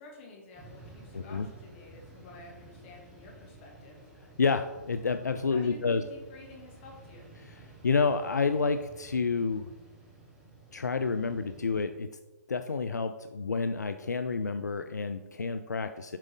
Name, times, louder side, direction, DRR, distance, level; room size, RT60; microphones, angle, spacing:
voice 1, 0.0-4.0 5.5-7.3, left 2 dB, 40° left, -1 dB, 2.3 m, -51 dB
sound 1, 0.5-11.8, right 2 dB, 10° right, 1.6 m, -53 dB
voice 2, 1.1-1.5 4.4-6.0 7.4-9.7 10.7-12.1 12.5-16.2, left 4 dB, 85° left, 9 dB, 0.4 m, -29 dB
7.4 x 4.9 x 3.7 m, 1.2 s
figure-of-eight pair, 130°, 9 cm